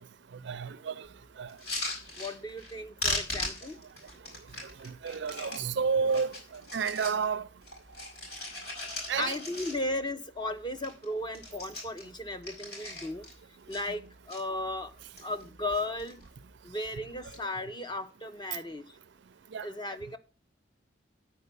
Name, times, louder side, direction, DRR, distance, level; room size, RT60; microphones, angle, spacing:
voice 1, 0.4-1.1 1.4-1.6 4.8-7.5 9.1-9.4 19.5-19.7, right 5 dB, 65° right, 0.4 m, -31 dB
sound 1, 1.5-2.7 3.0-5.6 6.1-7.2 7.6-10.1 10.4-10.5 10.7-11.0 11.3-13.3 13.7-14.4 14.9-15.4 15.7-16.3 17.1-17.4, left 2 dB, 55° left, 5.3 m, -38 dB
voice 2, 2.2-3.8 9.2-13.3 13.7-14.9 15.2-16.2 16.6-19.0 19.6-20.2, left 1 dB, 25° left, 0.8 m, -35 dB
9.3 x 4.5 x 6.7 m
head